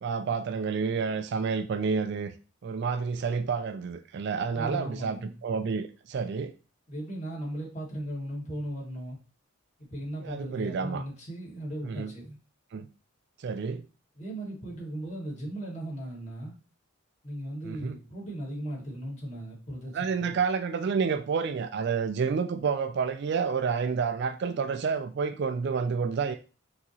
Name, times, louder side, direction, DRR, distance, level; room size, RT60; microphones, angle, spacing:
voice 1, 0.0-2.3 2.6-6.5 10.2-11.0 11.8-12.1 12.7-12.9 13.4-13.8 17.6-18.0 19.9-26.3, right 5 dB, 50° right, 0.3 m, -29 dB
voice 2, 4.5-5.4 6.9-9.2 9.8-12.4 14.2-16.6 17.2-20.4, right 1 dB, 30° left, 1.8 m, -37 dB
5.9 x 2.9 x 2.9 m
head